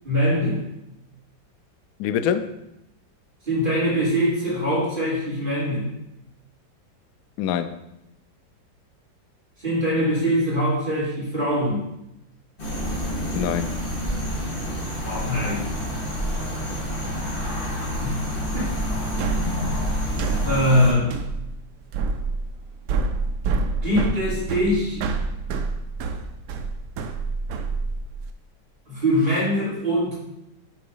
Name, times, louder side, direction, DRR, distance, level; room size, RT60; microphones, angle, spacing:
voice 1, 0.0-0.6 3.4-5.9 9.6-11.9 15.0-15.7 17.6-17.7 18.0-18.2 18.5-18.7 20.3-21.1 23.8-25.1 28.9-30.1, equal, 25° right, -8 dB, 3.2 m, -23 dB
voice 2, 2.0-2.5 7.4-7.8 13.3-13.8 16.7-17.3, left 9 dB, 75° left, 10 dB, 0.8 m, -26 dB
sound 1, 12.6-20.9, equal, 30° left, 1.9 m, -28 dB
sound 2, 19.2-28.3, right 4 dB, 75° right, 1.1 m, -27 dB
7.7 x 4.0 x 5.4 m, 0.88 s
omnidirectional pair, 1.9 m